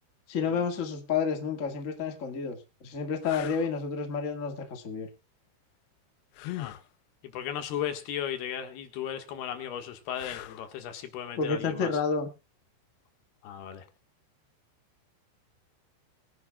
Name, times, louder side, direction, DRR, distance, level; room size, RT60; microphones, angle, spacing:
voice 1, 0.3-5.1 11.4-12.3, left 5 dB, 55° left, 4 dB, 0.8 m, -30 dB
sound 1, 1.7-1.8 2.5-2.6 3.2-3.7 6.3-6.9 10.1-10.8 13.7-13.9, left 15 dB, 90° left, 2.9 m, -40 dB
voice 2, 7.2-11.9 13.4-13.8, left 9 dB, 75° left, 7 dB, 3.4 m, -36 dB
23.0 x 10.5 x 2.3 m, 0.27 s
omnidirectional pair, 4.7 m